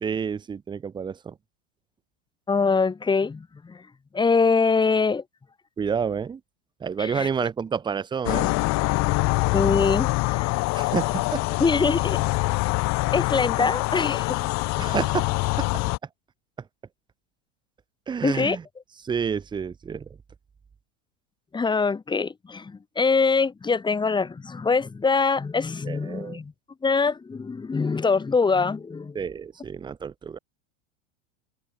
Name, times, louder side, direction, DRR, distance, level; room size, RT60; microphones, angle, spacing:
voice 1, 0.0-1.3 5.8-6.4 6.8-8.6 10.8-11.4 12.9-13.1 13.6-13.7 14.8-15.3 15.6-15.7 18.1-18.6 19.0-20.1 25.9-26.4 29.1-30.4, right 6 dB, 10° right, 0.7 m, -29 dB
voice 2, 2.5-3.8 4.1-5.2 7.0-7.3 9.5-10.5 11.6-12.2 13.1-14.4 18.2-18.6 21.5-26.5 26.8-29.2, left 4 dB, 10° left, 2.3 m, -23 dB
sound 1, 8.3-16.0, left 24 dB, 45° left, 1.7 m, -24 dB
supercardioid pair, 135°, 37 cm